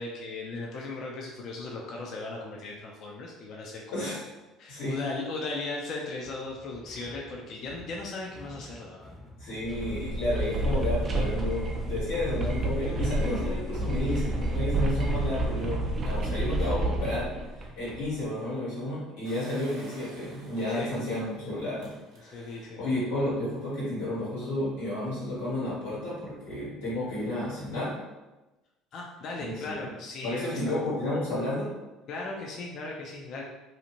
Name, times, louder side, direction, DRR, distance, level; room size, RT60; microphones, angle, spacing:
voice 1, 0.0-4.1 4.6-9.1 20.7-20.9 22.3-22.9 28.9-30.8 32.1-33.4, left 3 dB, 55° left, -2 dB, 0.5 m, -37 dB
voice 2, 3.9-4.2 4.7-5.0 9.4-17.3 17.7-27.9 29.4-29.7 30.2-31.7, left 1 dB, 90° left, -7 dB, 1.4 m, -32 dB
sound 1, 6.2-17.0, left 1 dB, 20° left, 0.7 m, -50 dB
sound 2, 9.6-18.1, right 1 dB, 40° right, 0.5 m, -29 dB
Engine, 19.2-22.7 23.2-23.3 23.5-23.6, right 2 dB, 75° right, 0.8 m, -49 dB
2.7 x 2.4 x 2.9 m, 1.1 s
hypercardioid pair, 75°, 0 cm